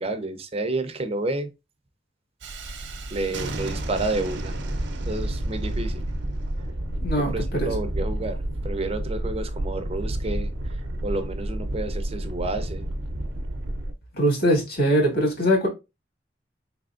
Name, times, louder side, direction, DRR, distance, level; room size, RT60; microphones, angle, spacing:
voice 1, 0.0-1.5 3.1-4.5 5.1-6.0 7.2-10.5 11.0-12.9, right 2 dB, 35° right, 0.6 m, -30 dB
Thunderstorm, 2.4-13.9, right 1 dB, 85° right, 0.7 m, -30 dB
voice 2, 7.0-7.7 14.1-15.7, equal, 55° left, 2.0 m, -22 dB
4.2 x 3.4 x 2.4 m
head